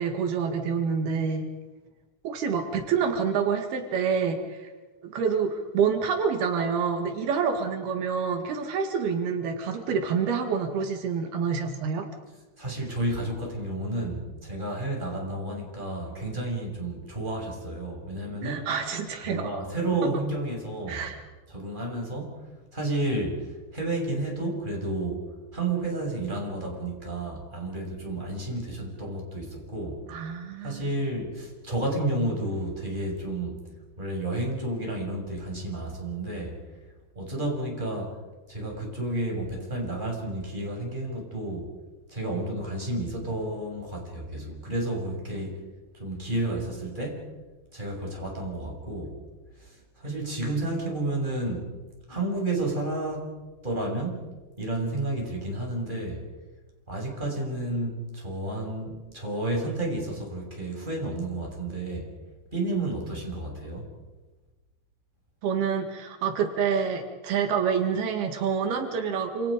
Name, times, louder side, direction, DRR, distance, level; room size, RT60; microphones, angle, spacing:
voice 1, 0.0-1.5 2.2-4.7 5.0-12.1 18.4-19.5 20.0-20.1 20.9-21.2 30.1-30.8 50.1-50.2 65.4-69.5, right 6 dB, 80° right, 5 dB, 3.9 m, -27 dB
voice 2, 12.6-18.7 19.2-21.1 21.5-22.3 22.7-25.3 25.5-30.0 30.6-33.6 34.0-36.6 37.2-38.2 38.5-41.7 42.1-45.7 46.0-47.2 47.7-49.2 49.6-51.7 52.1-53.3 53.6-54.3 54.6-56.2 56.9-62.1 62.5-63.9, right 2 dB, 10° right, -1 dB, 7.1 m, -31 dB
28.5 x 28.5 x 5.2 m, 1.2 s
omnidirectional pair, 4.4 m